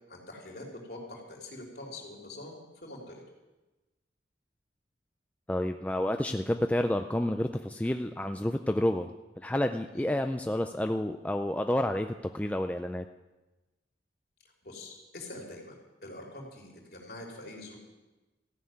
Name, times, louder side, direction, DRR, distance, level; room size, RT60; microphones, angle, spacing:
voice 1, 0.1-3.2 9.9-10.1 14.6-15.7 16.0-17.8, left 2 dB, 60° left, -1 dB, 3.3 m, -44 dB
voice 2, 5.5-9.1 9.4-13.1, left 1 dB, 10° left, 6 dB, 0.3 m, -29 dB
14.5 x 6.6 x 9.3 m, 1.1 s
head